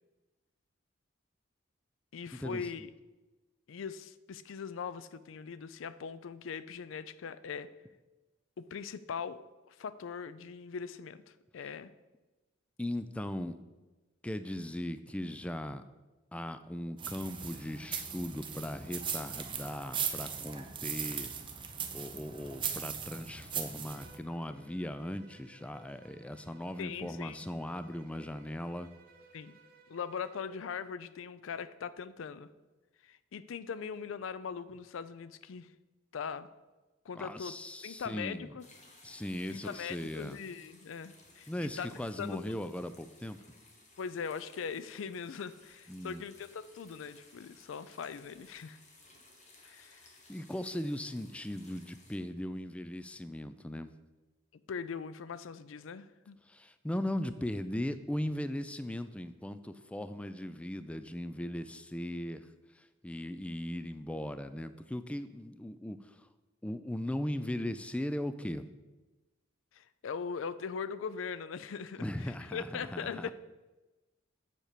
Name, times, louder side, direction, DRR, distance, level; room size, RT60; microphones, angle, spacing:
voice 1, 2.1-2.9 3.7-7.7 8.6-11.9 26.8-27.5 29.3-29.5 29.9-32.5 33.0-35.7 36.1-36.5 37.1-37.5 37.8-38.6 39.5-41.9 42.2-42.6 44.0-48.8 49.6-50.1 54.7-56.4 69.7-73.3, left 6 dB, 90° left, 15 dB, 0.4 m, -41 dB
voice 2, 12.8-13.6 14.2-15.8 16.3-21.3 21.9-28.9 37.2-38.5 39.0-40.4 41.5-43.4 45.9-46.2 50.3-53.9 56.5-62.5 62.8-66.3 66.6-68.7 72.0-73.3, left 1 dB, 5° left, 11 dB, 0.3 m, -38 dB
sound 1, 17.0-24.2, right 7 dB, 25° right, 0.7 m, -39 dB
Bowed string instrument, 23.9-30.6, right 3 dB, 50° right, 1.0 m, -60 dB
sound 2, 38.6-52.2, left 2 dB, 40° left, 1.5 m, -59 dB
7.2 x 4.5 x 6.7 m, 1.1 s
head